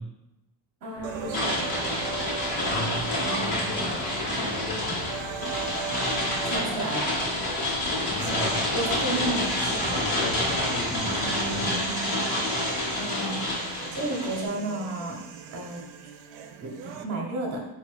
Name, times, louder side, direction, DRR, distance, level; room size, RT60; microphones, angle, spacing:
voice 1, 0.8-1.6 6.5-7.1 8.4-8.5 8.7-9.9 13.0-13.5 13.9-15.2 15.5-15.8 16.6-17.6, right 2 dB, 45° right, -1 dB, 0.8 m, -32 dB
sound 1, 1.0-11.6, left 2 dB, 65° left, 0.7 m, -43 dB
sound 2, 1.0-17.0, right 8 dB, 65° right, 0.5 m, -38 dB
sound 3, 1.3-14.5, left 1 dB, 45° left, 1.1 m, -28 dB
voice 2, 2.6-3.0 3.3-4.1 4.4-5.1 8.0-8.5 9.0-11.9, left 1 dB, 20° left, -6 dB, 0.3 m, -36 dB
3.9 x 2.3 x 4.6 m, 0.94 s
cardioid pair, 160°, 49 cm